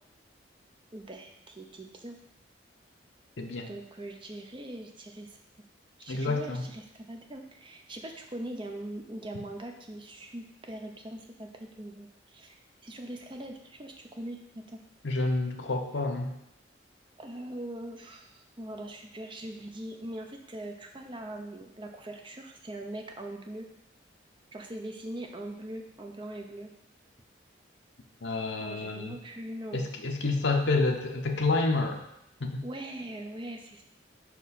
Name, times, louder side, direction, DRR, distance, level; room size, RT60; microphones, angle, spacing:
voice 1, 0.9-2.2 3.7-5.3 6.0-14.4 14.7-14.8 17.2-23.7 24.5-26.7 28.6-29.9 32.6-33.8, right 1 dB, 25° right, 3 dB, 0.7 m, -41 dB
voice 2, 3.4-3.7 6.1-6.6 15.0-16.3 28.2-29.1 29.7-32.0 32.4-32.6, left 3 dB, 70° left, 4 dB, 0.8 m, -28 dB
5.4 x 4.6 x 4.1 m, 0.81 s
head